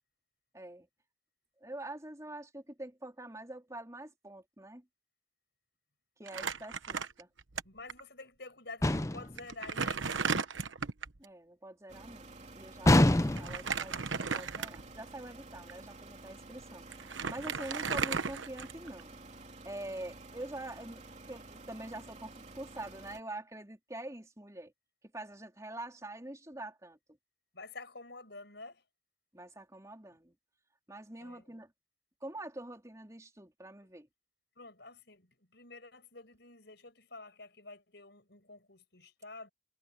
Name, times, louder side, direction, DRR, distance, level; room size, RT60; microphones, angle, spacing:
voice 1, 0.5-0.9 1.6-4.8 6.2-7.3 11.2-16.8 17.3-19.2 19.6-24.7 25.1-27.0 29.3-30.3 30.9-31.7 32.2-34.1, right 1 dB, 15° right, 3.8 m, -45 dB
Crumpling crinkling, 6.3-7.6 7.9-8.0 8.9-9.0 9.4-11.2 13.4-15.0 15.6-15.7 16.6-16.7 16.9-19.0, right 5 dB, 75° right, 1.1 m, -35 dB
voice 2, 7.6-10.3 27.5-28.8 31.2-31.5 34.6-39.5, left 3 dB, 55° left, 7.8 m, -49 dB
sound 1, 8.8-9.4 12.8-13.7, left 1 dB, 15° left, 0.6 m, -24 dB
sound 2, 11.9-23.2, right 2 dB, 35° right, 3.2 m, -51 dB
head